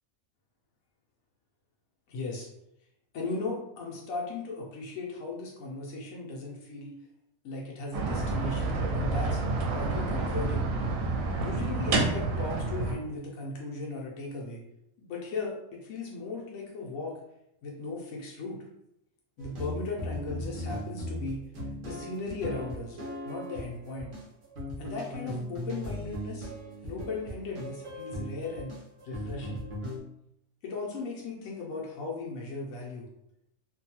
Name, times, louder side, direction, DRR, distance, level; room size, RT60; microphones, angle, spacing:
voice 1, 2.1-2.5 3.1-6.9 7.4-9.4 9.7-10.7 11.4-14.6 15.0-17.2 17.6-18.6 19.4-21.4 21.8-23.0 23.2-24.1 24.8-26.5 26.8-28.7 29.0-29.6 30.6-33.1, left 3 dB, 85° left, -2 dB, 1.0 m, -37 dB
sound 1, 7.9-12.9, right 3 dB, 80° right, 1.0 m, -29 dB
sound 2, 19.4-30.0, equal, 50° right, 0.7 m, -38 dB
2.6 x 2.2 x 2.8 m, 0.80 s
omnidirectional pair, 1.4 m